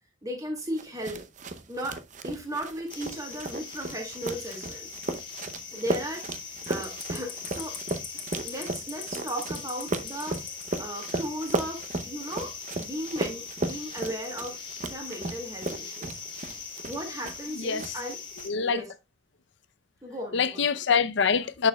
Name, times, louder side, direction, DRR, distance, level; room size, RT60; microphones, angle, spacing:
voice 1, 0.2-1.2 1.7-2.0 2.2-4.9 5.7-6.3 6.7-7.8 8.4-10.4 10.8-12.5 12.8-16.2 16.8-18.2 18.6-18.9 20.0-20.6, equal, 15° right, 2.1 m, -36 dB
sound 1, 0.8-17.5 17.8-18.4, right 2 dB, 40° right, 0.7 m, -35 dB
sound 2, 2.9-18.5, left 5 dB, 25° left, 1.8 m, -41 dB
voice 2, 17.5-18.0 18.4-18.8 20.3-21.7, left 6 dB, 60° left, 0.6 m, -25 dB
9.9 x 6.5 x 2.3 m
head